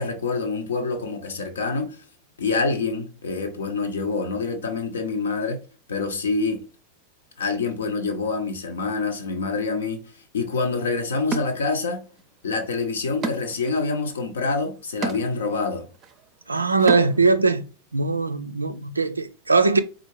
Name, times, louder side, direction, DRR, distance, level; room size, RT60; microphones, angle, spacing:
voice 1, 0.0-2.0 2.4-5.6 5.9-6.6 7.4-10.0 10.3-12.0 12.4-15.9, left 4 dB, 65° left, 0.8 m, -26 dB
sound 1, 10.5-10.6 11.3-12.2 12.6-17.4, right 5 dB, 30° right, 0.5 m, -34 dB
voice 2, 16.5-17.6 17.9-19.8, right 4 dB, 80° right, 0.4 m, -20 dB
4.3 x 2.4 x 3.1 m
figure-of-eight pair, 90°, 0 cm